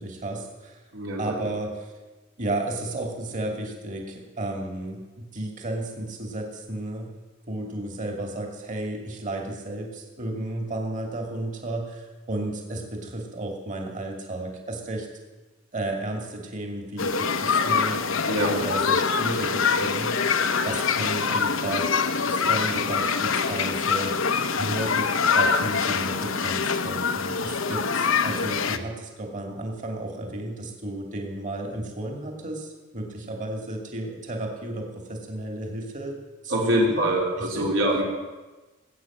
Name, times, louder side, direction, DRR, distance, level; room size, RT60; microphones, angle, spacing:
voice 1, 0.0-0.7 1.2-1.9 2.4-7.1 7.5-15.1 15.7-18.1 18.5-20.4 20.6-21.9 22.2-24.3 24.6-36.2 36.4-37.7, right 1 dB, 40° right, 1 dB, 2.7 m, -33 dB
voice 2, 0.9-1.3 18.3-18.5 36.5-38.0, right 1 dB, 70° right, -2 dB, 3.6 m, -24 dB
sound 1, 17.0-28.8, left 5 dB, 70° left, 0.9 m, -24 dB
18.5 x 8.8 x 7.4 m, 1.2 s
head